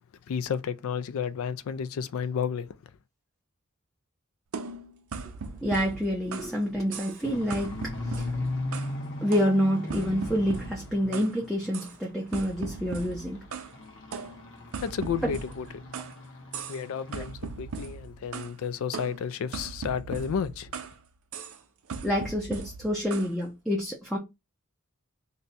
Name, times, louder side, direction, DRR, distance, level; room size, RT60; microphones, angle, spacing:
voice 1, 0.3-2.7 14.8-15.7 16.7-20.7, left 7 dB, 70° left, 0.3 m, -32 dB
sound 1, 4.5-6.6 6.9-7.2 7.5-9.0 9.3-11.4 11.7-12.0 12.3-13.7 14.1-16.2 16.5-16.9 17.1-18.5 18.9-21.0 21.3-21.6 21.9-23.3, right 5 dB, 70° right, 0.5 m, -39 dB
voice 2, 5.6-8.3 9.2-13.4 22.0-24.2, equal, ahead, 0.5 m, -28 dB
sound 2, 7.2-11.8 12.2-17.4 17.7-17.9 18.3-18.4 18.8-18.9, left 2 dB, 55° left, 0.8 m, -38 dB
2.7 x 2.2 x 3.9 m
head